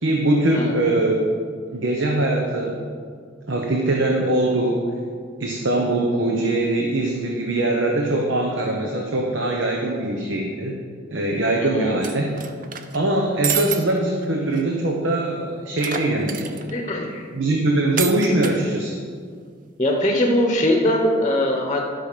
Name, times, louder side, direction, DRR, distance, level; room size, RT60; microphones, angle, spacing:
voice 1, 0.0-1.2 1.7-2.8 3.5-4.8 5.4-10.8 11.1-12.3 12.9-16.6 17.3-19.0, right 1 dB, 70° right, 1 dB, 1.0 m, -22 dB
sound 1, 12.0-13.0 13.4-13.8 14.2-14.3 14.5-14.6 15.8-16.7 18.0-18.6, right 8 dB, 45° right, 0.6 m, -28 dB
voice 2, 16.7-17.3 19.8-21.8, left 1 dB, 20° left, 1 dB, 1.0 m, -21 dB
12.0 x 5.7 x 6.7 m, 2.1 s
head